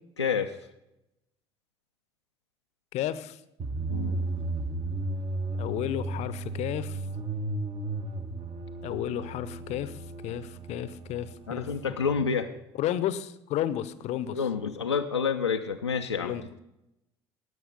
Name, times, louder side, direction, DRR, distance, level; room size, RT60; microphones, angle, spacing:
voice 1, 0.2-0.6 3.8-4.2 11.5-12.5 14.3-16.3, left 6 dB, 90° left, 3 dB, 0.5 m, -28 dB
voice 2, 2.9-3.4 5.6-7.0 8.8-10.0 10.2-11.7 12.8-14.4 16.2-16.4, left 11 dB, 55° left, 15 dB, 0.7 m, -32 dB
sound 1, 3.6-12.4, right 2 dB, 40° right, 1.4 m, -34 dB
17.0 x 6.5 x 5.2 m, 0.88 s
figure-of-eight pair, 55°, 14 cm